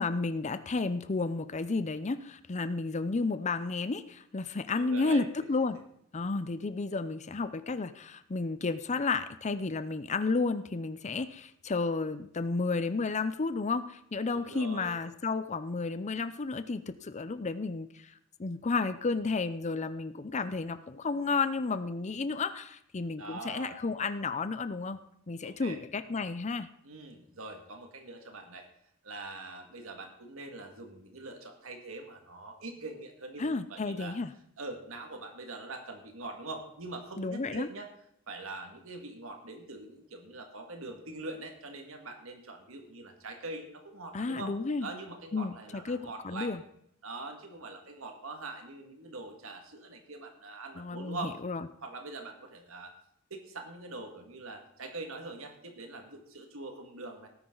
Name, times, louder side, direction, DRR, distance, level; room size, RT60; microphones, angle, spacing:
voice 1, 0.0-5.8 6.1-18.1 18.4-25.0 25.3-26.7 33.4-34.3 37.2-37.7 44.1-44.9 45.3-46.6 50.8-51.2 51.4-51.7, left 3 dB, 35° left, 12 dB, 0.6 m, -32 dB
voice 2, 4.7-5.3 14.3-15.0 23.2-23.8 25.4-25.8 26.8-28.7 29.0-34.2 34.6-37.9 38.3-44.5 44.8-46.6 47.0-51.4 51.8-53.0 53.3-57.3, right 2 dB, 85° right, 4 dB, 2.0 m, -43 dB
18.5 x 10.0 x 3.9 m, 0.73 s
head